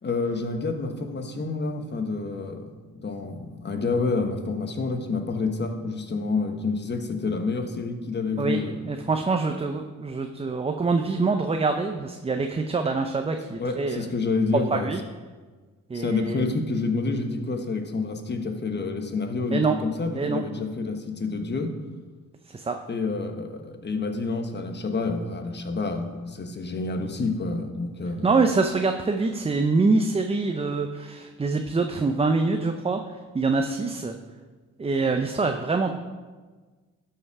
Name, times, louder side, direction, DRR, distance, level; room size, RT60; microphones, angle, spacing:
voice 1, 0.0-8.8 13.6-14.9 15.9-21.7 22.9-28.3, left 3 dB, 35° left, 6 dB, 1.3 m, -28 dB
voice 2, 8.4-14.1 14.7-15.0 15.9-16.4 19.5-19.8 20.2-20.4 22.5-22.8 28.2-33.0 33.3-34.1 34.8-35.9, right 3 dB, 20° right, 5 dB, 0.6 m, -25 dB
12.0 x 5.7 x 4.8 m, 1.4 s
cardioid pair, 90°, 30 cm